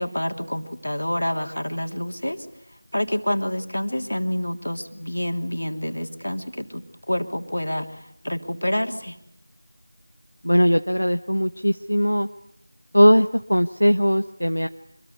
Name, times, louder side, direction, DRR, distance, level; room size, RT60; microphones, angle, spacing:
voice 1, 0.0-2.5 2.9-9.2, left 1 dB, 60° left, 5 dB, 3.1 m, -28 dB
voice 2, 10.4-12.3 12.9-14.7, equal, 85° left, 8 dB, 1.1 m, -19 dB
26.5 x 22.0 x 9.6 m, 0.76 s
figure-of-eight pair, 175°, 0 cm